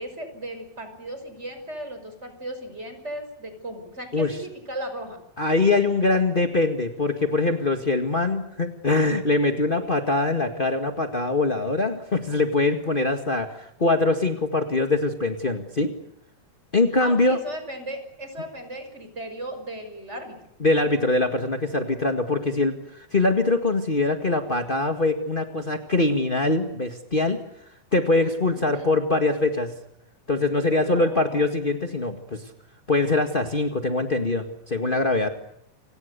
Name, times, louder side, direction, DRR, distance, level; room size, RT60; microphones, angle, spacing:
voice 1, 0.0-5.2 17.0-20.4 28.5-28.9 30.7-31.4, right 1 dB, 15° right, 7 dB, 5.9 m, -36 dB
voice 2, 5.4-15.9 16.7-17.4 20.6-27.4 27.9-29.7 30.3-32.4 32.9-35.3, left 2 dB, 40° left, 6 dB, 0.7 m, -23 dB
29.5 x 27.0 x 6.8 m, 0.75 s
omnidirectional pair, 4.3 m